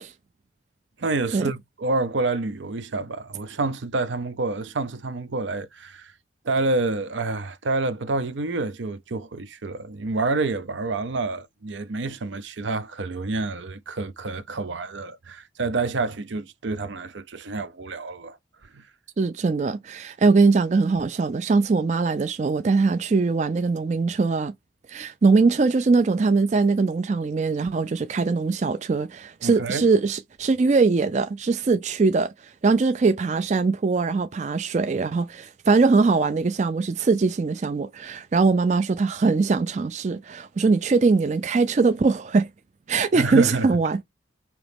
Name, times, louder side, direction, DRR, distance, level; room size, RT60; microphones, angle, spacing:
voice 1, 1.0-6.1 6.4-18.4 18.7-18.8 29.4-29.9 43.1-43.7, right 3 dB, 75° right, 0.6 m, -28 dB
voice 2, 19.2-24.5 24.9-42.5 42.9-44.0, right 4 dB, 40° right, 0.4 m, -21 dB
5.0 x 3.0 x 3.4 m
head